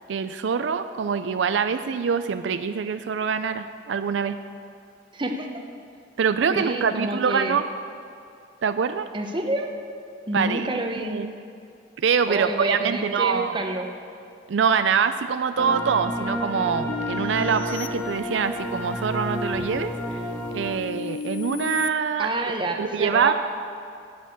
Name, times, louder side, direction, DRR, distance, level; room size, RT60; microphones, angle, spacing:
voice 1, 0.1-4.4 6.2-7.6 8.6-9.1 10.3-10.7 11.0-11.3 12.0-13.6 14.5-20.2 20.5-22.3 22.8-23.3, right 6 dB, 80° right, 10 dB, 0.4 m, -24 dB
voice 2, 5.1-5.5 6.5-7.6 9.1-9.7 10.3-11.2 12.3-13.9 22.2-23.3, right 2 dB, 25° right, 3 dB, 1.0 m, -28 dB
sound 1, 15.6-20.8, left 1 dB, 5° left, 0.9 m, -31 dB
sound 2, 16.9-18.8 19.4-21.9, left 5 dB, 65° left, 0.4 m, -36 dB
9.9 x 9.6 x 7.1 m, 2.5 s
head